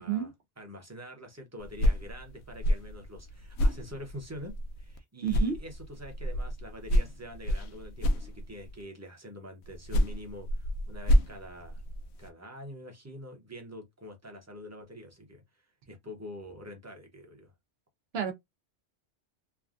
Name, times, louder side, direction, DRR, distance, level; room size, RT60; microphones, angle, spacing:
voice 1, 0.0-11.8 12.2-17.5, equal, 15° right, 0.8 m, -45 dB
sound 1, 1.6-5.0 5.3-8.8 9.6-12.3, equal, 70° left, 0.8 m, -29 dB
voice 2, 5.2-5.6 18.1-18.3, right 8 dB, 65° right, 1.0 m, -30 dB
3.4 x 2.3 x 2.4 m
omnidirectional pair, 1.2 m